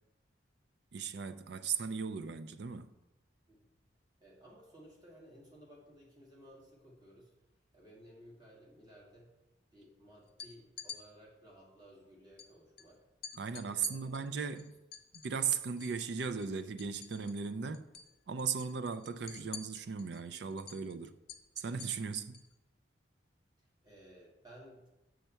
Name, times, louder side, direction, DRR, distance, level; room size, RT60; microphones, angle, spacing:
voice 1, 0.9-2.9 13.3-14.8 15.2-17.9 18.3-21.2 21.6-22.4, right 6 dB, 60° right, 0.4 m, -37 dB
voice 2, 4.2-7.3 7.7-9.3 9.7-13.1 13.5-14.6 23.8-24.9, equal, 20° right, 2.1 m, -57 dB
sound 1, 10.3-11.0 12.4-12.5 12.8-12.9 13.2-16.0 16.3-17.5 17.7-18.1 18.4-22.5, left 8 dB, 55° left, 0.7 m, -49 dB
6.8 x 6.4 x 4.5 m
head